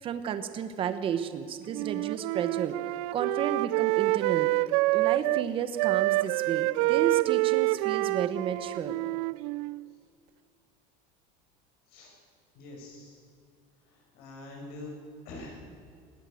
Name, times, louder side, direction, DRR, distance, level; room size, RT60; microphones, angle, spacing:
voice 1, 0.0-4.5 4.9-9.0, right 8 dB, 30° right, 10 dB, 1.2 m, -32 dB
Wind instrument woodwind instrument, 1.7-5.5 5.8-9.9, right 22 dB, 75° right, 0.4 m, -27 dB
voice 2, 12.5-13.2 13.9-14.9 15.2-15.6, left 2 dB, 60° left, 0 dB, 6.7 m, -44 dB
20.0 x 18.0 x 7.9 m, 2.3 s
cardioid pair, 175°, 18 cm